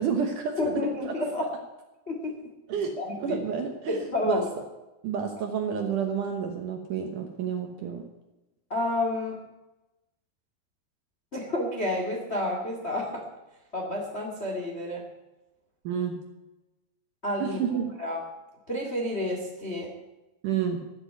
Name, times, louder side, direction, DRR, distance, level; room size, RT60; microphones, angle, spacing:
voice 1, 0.0-1.1 2.7-4.4 5.0-8.0 15.8-16.2 17.4-17.9 20.4-20.8, right 7 dB, 70° right, 4 dB, 2.1 m, -30 dB
voice 2, 0.6-1.5 2.1-2.4 3.0-3.4 3.9-4.5 8.7-9.4 11.3-13.2 13.7-15.0 17.2-17.6 18.0-18.2 18.7-19.9, left 1 dB, 65° left, 0 dB, 0.6 m, -30 dB
14.0 x 7.1 x 9.3 m, 1.0 s
omnidirectional pair, 5.0 m